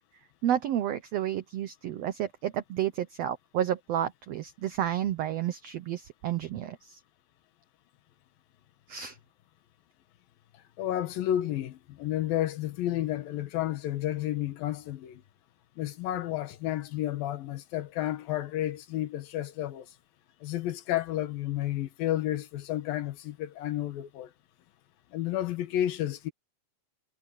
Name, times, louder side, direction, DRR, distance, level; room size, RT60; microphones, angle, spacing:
voice 1, 0.4-7.0 8.9-9.2, right 11 dB, 75° right, 1.5 m, -31 dB
voice 2, 10.8-15.2 15.8-19.9 20.4-24.3 25.1-26.3, left 13 dB, 90° left, 3.1 m, -31 dB
omnidirectional pair, 4.0 m